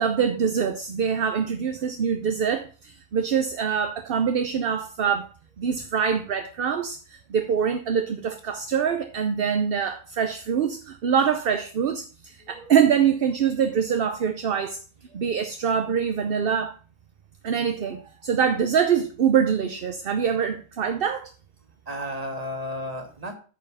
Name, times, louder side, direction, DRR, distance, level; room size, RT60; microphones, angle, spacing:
voice 1, 0.0-5.3 5.6-14.8 15.1-16.8 17.4-21.3, right 7 dB, 50° right, 0.8 m, -24 dB
voice 2, 12.4-12.7 21.9-23.3, equal, 30° right, 1.7 m, -33 dB
9.0 x 5.5 x 5.6 m
omnidirectional pair, 1.4 m